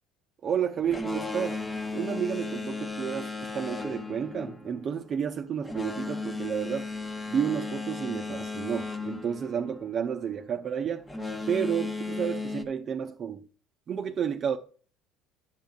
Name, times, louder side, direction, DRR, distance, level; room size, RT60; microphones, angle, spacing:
voice 1, 0.4-1.6 1.9-6.9 7.3-11.1 11.5-13.5 13.9-14.6, right 8 dB, 45° right, 0.7 m, -31 dB
Boat Water vehicle, 0.8-10.3 11.0-12.6, left 3 dB, 20° left, 1.2 m, -36 dB
10.5 x 7.4 x 2.4 m
hypercardioid pair, 70°, 0 cm